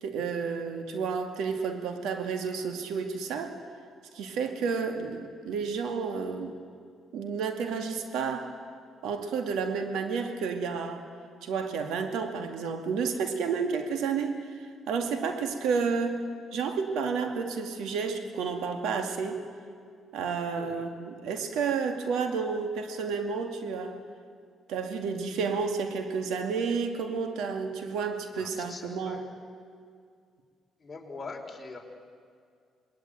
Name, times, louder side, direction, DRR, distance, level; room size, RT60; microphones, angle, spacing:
voice 1, 0.0-3.6 4.1-6.5 7.1-8.5 9.0-11.0 11.4-14.4 14.9-16.2 16.5-19.4 20.1-24.0 24.7-29.2, right 5 dB, 85° right, 6 dB, 2.3 m, -31 dB
voice 2, 20.5-20.9 28.3-29.3 30.8-31.8, left 3 dB, 25° left, 0 dB, 4.9 m, -43 dB
27.5 x 20.5 x 9.1 m, 2.2 s
cardioid pair, 90°, 0 cm